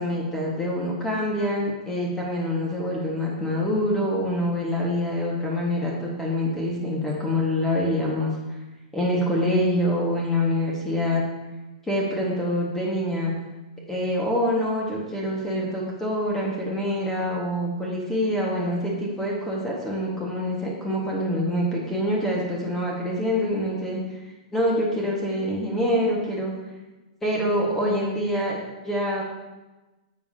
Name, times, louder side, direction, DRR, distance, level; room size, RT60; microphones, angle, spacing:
voice 1, 0.0-8.3 8.9-11.2 11.9-13.3 13.9-24.0 24.5-26.5 27.2-28.6 28.8-29.2, left 1 dB, 10° left, -3 dB, 1.5 m, -25 dB
10.0 x 7.3 x 2.8 m, 1.1 s
hypercardioid pair, 140°, 4 cm